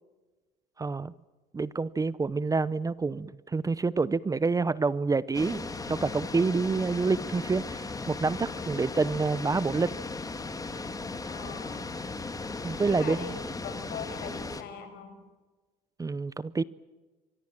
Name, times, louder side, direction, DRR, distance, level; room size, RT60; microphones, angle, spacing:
voice 1, 0.8-1.1 1.5-10.0 12.6-13.4 16.0-16.6, right 4 dB, 20° right, 0.7 m, -28 dB
sound 1, 5.3-14.6, left 3 dB, 20° left, 2.5 m, -37 dB
voice 2, 10.7-11.9 12.8-15.2, left 6 dB, 75° left, 6.3 m, -42 dB
25.0 x 23.5 x 7.6 m
cardioid pair, 110°, 17 cm